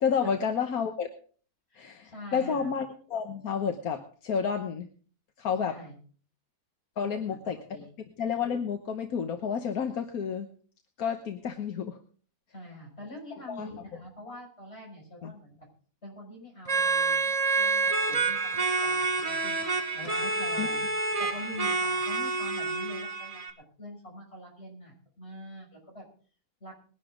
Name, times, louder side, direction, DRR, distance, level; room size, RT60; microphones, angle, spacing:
voice 1, 0.0-1.1 1.7-4.9 5.4-5.8 7.0-7.6 8.2-10.5 11.0-12.0 13.5-13.7 15.2-15.3 20.6-20.7, left 6 dB, 80° left, 6 dB, 1.6 m, -30 dB
voice 2, 1.7-2.7 5.6-6.0 7.0-7.9 12.5-15.6 16.0-19.6 19.9-20.8 21.2-23.4 23.8-26.0 26.6-26.8, left 1 dB, 45° left, 0 dB, 6.2 m, -44 dB
sound 1, 16.6-23.5, right 4 dB, 25° right, 1.4 m, -28 dB
20.5 x 11.0 x 3.8 m, 0.43 s
omnidirectional pair, 1.5 m